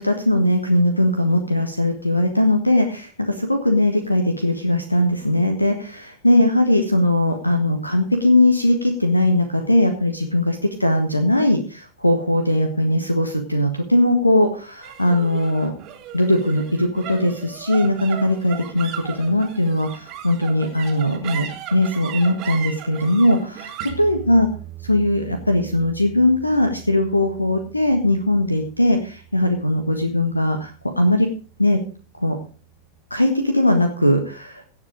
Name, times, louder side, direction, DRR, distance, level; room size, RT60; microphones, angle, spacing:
voice 1, 0.0-15.7 16.1-24.5 24.9-31.3 31.6-31.8 32.2-32.4 33.1-34.6, left 1 dB, 85° left, 6 dB, 1.4 m, -19 dB
sound 1, 14.8-31.4, right 10 dB, 40° right, 2.2 m, -38 dB
16.5 x 7.4 x 4.9 m, 0.38 s
figure-of-eight pair, 90°, 0 cm